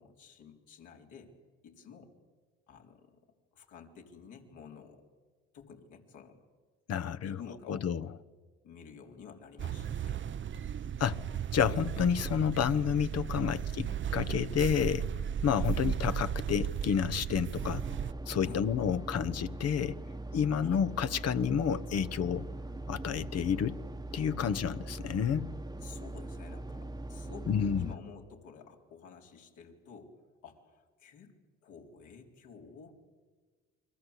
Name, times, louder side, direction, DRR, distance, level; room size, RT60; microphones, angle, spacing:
voice 1, 0.0-1.3 1.6-2.1 2.7-3.2 3.5-5.0 5.5-6.4 7.2-7.9 8.6-10.2 15.6-15.8 18.4-18.7 20.6-20.8 25.8-30.1 30.4-31.3 31.6-33.0, left 6 dB, 75° left, 4.1 m, -51 dB
voice 2, 6.9-7.4 7.7-8.1 11.0-11.2 11.5-13.9 14.1-15.0 15.4-17.8 18.3-20.0 20.3-22.5 22.9-23.8 24.1-25.5 27.5-27.9, left 8 dB, 55° left, 1.1 m, -30 dB
sound 1, 9.6-18.1, right 8 dB, 40° right, 0.8 m, -35 dB
sound 2, 17.6-28.0, right 2 dB, 15° right, 1.2 m, -41 dB
29.0 x 22.0 x 8.3 m
supercardioid pair, 70°, 30 cm